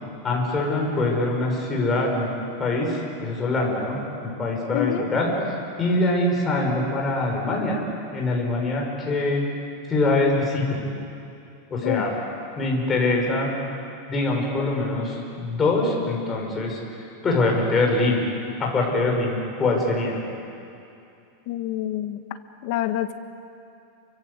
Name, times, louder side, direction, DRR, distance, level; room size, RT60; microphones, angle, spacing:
voice 1, 0.2-2.3 2.6-5.3 5.8-7.8 8.1-9.4 9.9-10.8 11.7-12.1 12.6-13.5 14.1-16.8 17.2-18.2 18.6-20.2, left 2 dB, 15° left, -1 dB, 5.5 m, -23 dB
voice 2, 4.7-5.1 11.8-12.0 21.5-22.2 22.6-23.1, left 13 dB, 50° left, 8 dB, 1.6 m, -26 dB
29.0 x 24.0 x 8.2 m, 2.6 s
supercardioid pair, 160°, 0 cm